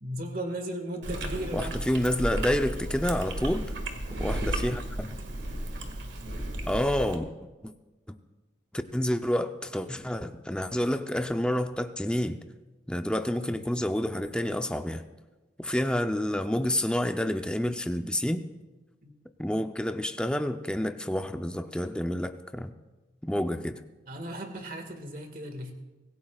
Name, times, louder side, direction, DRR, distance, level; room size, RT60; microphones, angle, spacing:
voice 1, 0.0-1.7 2.0-2.1 19.0-19.1 24.1-25.7, right 1 dB, 50° right, 5 dB, 1.9 m, -36 dB
Chewing mastication, 1.0-7.2, right 1 dB, 85° right, 1.9 m, -34 dB
voice 2, 1.5-3.7 4.2-5.2 6.7-7.3 7.6-7.7 8.7-12.4 12.9-15.0 15.6-18.5 19.4-22.7 23.2-23.8, left 1 dB, 5° left, 7 dB, 0.6 m, -29 dB
25.0 x 16.5 x 2.4 m, 1.2 s
head